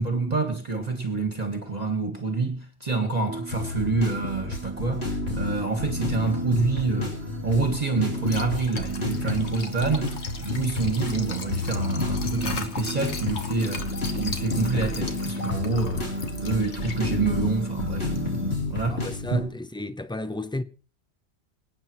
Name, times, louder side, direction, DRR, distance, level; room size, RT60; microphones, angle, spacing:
voice 1, 0.0-19.5, right 4 dB, 40° right, 1.7 m, -27 dB
sound 1, 3.3-18.6, right 2 dB, 10° right, 1.1 m, -37 dB
sound 2, 3.5-19.4, left 3 dB, 70° left, 3.5 m, -31 dB
Liquid, 8.0-19.3, left 4 dB, 90° left, 1.6 m, -39 dB
voice 2, 18.9-20.6, left 2 dB, 5° left, 0.3 m, -33 dB
25.5 x 9.1 x 3.0 m
omnidirectional pair, 1.1 m